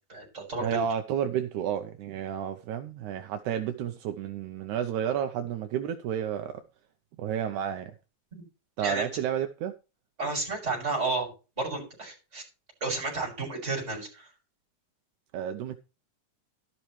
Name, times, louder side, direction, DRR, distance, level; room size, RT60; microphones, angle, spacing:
voice 1, 0.1-0.8 8.3-8.4 8.8-9.1 10.2-11.3 11.6-12.4 12.8-14.3, right 3 dB, 20° right, 7.2 m, -32 dB
voice 2, 0.6-6.6 7.2-7.9 8.8-9.7 15.3-15.8, right 9 dB, 80° right, 2.2 m, -31 dB
12.5 x 12.0 x 3.2 m
omnidirectional pair, 3.5 m